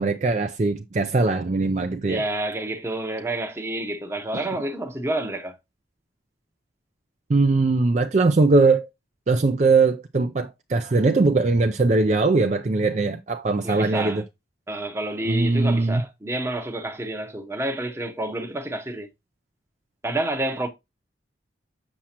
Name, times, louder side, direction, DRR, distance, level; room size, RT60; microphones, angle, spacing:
voice 1, 0.0-2.2 7.3-8.9 9.3-14.2 15.2-16.0, right 3 dB, 35° right, 0.4 m, -20 dB
voice 2, 2.1-5.6 13.6-14.2 14.7-19.1 20.0-20.7, right 1 dB, 15° right, 0.8 m, -29 dB
7.2 x 6.1 x 2.9 m
head